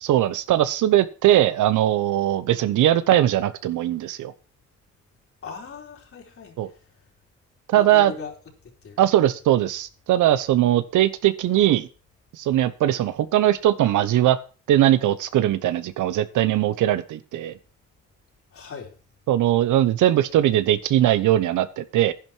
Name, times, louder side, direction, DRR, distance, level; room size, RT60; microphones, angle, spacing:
voice 1, 0.0-4.3 6.6-6.7 7.7-8.1 9.0-11.9 12.4-14.4 14.7-17.5 19.3-22.1, right 13 dB, 80° right, 1.0 m, -20 dB
voice 2, 5.4-6.8 7.7-8.3 8.8-9.0 18.5-18.9, left 5 dB, 45° left, 4.0 m, -38 dB
11.0 x 10.5 x 4.6 m
cardioid pair, 90°, 30 cm